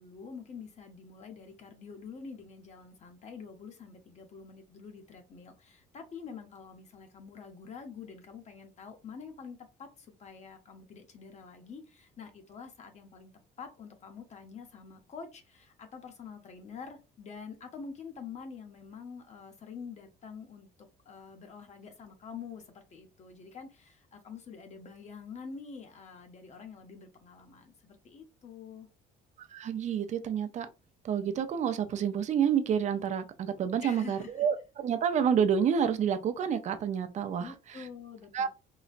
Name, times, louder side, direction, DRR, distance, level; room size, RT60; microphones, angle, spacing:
voice 1, 0.0-13.3 13.6-20.7 21.0-28.9 33.8-34.5 37.4-38.5, left 5 dB, 45° left, 0.8 m, -46 dB
voice 2, 29.5-30.7 31.0-37.8 38.3-38.5, right 8 dB, 45° right, 0.4 m, -29 dB
3.9 x 2.1 x 2.5 m
cardioid pair, 110°, 17 cm